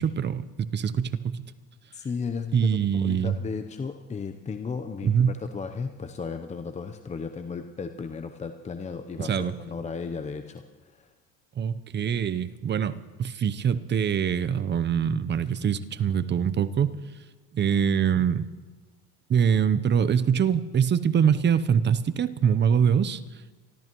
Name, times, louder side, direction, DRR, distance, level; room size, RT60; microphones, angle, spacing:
voice 1, 0.0-1.4 2.5-3.4 5.0-5.3 9.2-9.5 11.6-17.0 17.5-18.5 19.3-23.2, right 7 dB, 35° right, 14 dB, 0.7 m, -24 dB
voice 2, 1.9-11.1, left 5 dB, 20° left, 7 dB, 0.7 m, -35 dB
26.5 x 13.5 x 3.0 m, 1.3 s
supercardioid pair, 95°, 32 cm